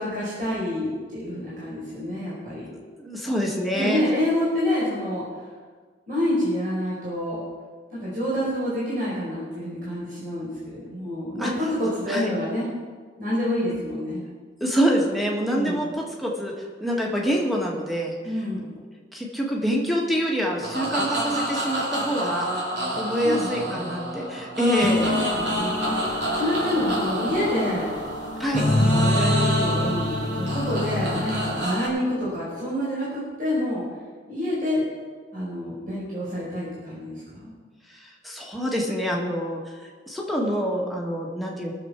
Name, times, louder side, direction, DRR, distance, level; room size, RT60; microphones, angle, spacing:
voice 1, 0.0-2.7 3.7-5.5 6.1-7.4 7.9-12.7 13.2-14.2 15.5-15.8 18.2-18.7 23.2-24.1 25.0-27.9 28.7-33.8 34.3-34.9 35.3-37.5, left 1 dB, 50° right, -8 dB, 4.7 m, -28 dB
voice 2, 3.0-4.0 11.4-11.5 12.1-12.3 14.6-16.5 16.8-18.2 19.1-22.5 22.9-25.1 28.4-28.7 37.9-39.6 40.1-41.7, equal, ahead, -2 dB, 2.0 m, -26 dB
sound 1, 20.6-31.9, right 1 dB, 65° right, 3.1 m, -28 dB
sound 2, 24.8-31.7, left 2 dB, 40° left, 0.8 m, -27 dB
21.5 x 7.3 x 4.8 m, 1.5 s
head